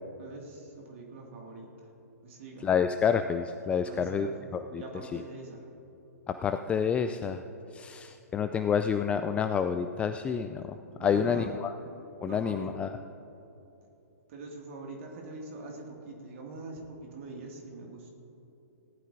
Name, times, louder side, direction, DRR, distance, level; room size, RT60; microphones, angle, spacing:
voice 1, 0.2-1.9 2.2-2.7 3.8-4.3 4.7-5.6 10.8-11.5 12.2-12.7 14.3-18.1, right 3 dB, 50° right, 0 dB, 2.1 m, -43 dB
voice 2, 2.6-4.3 4.5-4.8 5.1-5.2 6.3-7.4 7.7-11.7 12.2-12.9, left 7 dB, 15° left, 8 dB, 0.3 m, -28 dB
18.5 x 13.0 x 2.6 m, 3.0 s
figure-of-eight pair, 120°, 9 cm